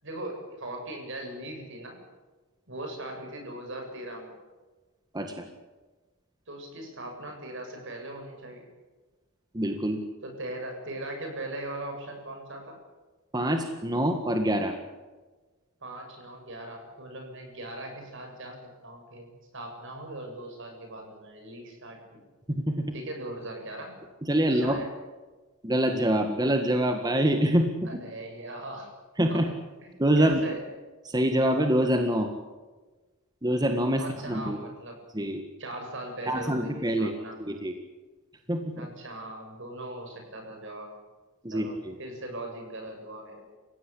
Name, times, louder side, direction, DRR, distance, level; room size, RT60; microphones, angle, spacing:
voice 1, 0.0-2.0 2.7-4.3 6.5-8.7 10.2-12.8 15.8-22.2 22.9-24.0 24.5-24.9 27.8-28.9 29.3-30.6 34.0-35.0 35.6-37.4 38.7-40.9 41.5-43.4, right 1 dB, 60° right, 3 dB, 7.8 m, -39 dB
voice 2, 5.1-5.5 9.5-10.0 13.3-14.7 22.5-22.9 24.3-24.8 25.6-27.9 29.2-29.5 30.0-30.4 31.0-32.3 33.4-34.6 35.1-35.4 36.3-37.1 37.5-37.7 38.5-38.9 41.4-41.9, right 1 dB, 20° right, 5 dB, 1.7 m, -25 dB
30.0 x 16.5 x 8.5 m, 1.3 s
head